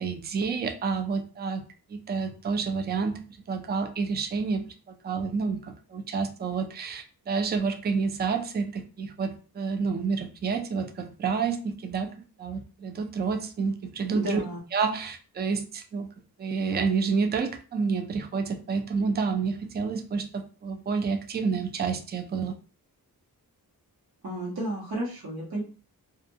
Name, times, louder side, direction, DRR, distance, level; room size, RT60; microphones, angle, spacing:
voice 1, 0.0-12.1 12.4-14.4 14.7-16.1 16.4-22.5, right 5 dB, 30° right, 0.4 m, -29 dB
voice 2, 14.1-14.6 24.2-25.6, right 1 dB, 70° right, 1.2 m, -32 dB
2.5 x 2.2 x 2.7 m
wide cardioid pair, 90°, 38 cm